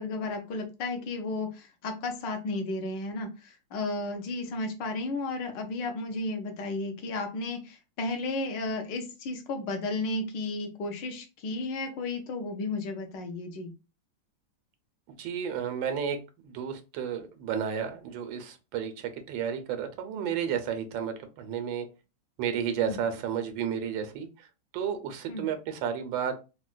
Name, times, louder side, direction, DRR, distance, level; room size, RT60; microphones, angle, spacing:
voice 1, 0.0-13.7 22.8-23.0 25.3-25.5, left 2 dB, 75° left, 4 dB, 1.4 m, -33 dB
voice 2, 15.2-16.2 16.4-21.9 22.4-24.5 24.7-26.3, right 8 dB, 90° right, 7 dB, 1.4 m, -32 dB
4.0 x 2.2 x 2.4 m, 0.29 s
omnidirectional pair, 2.0 m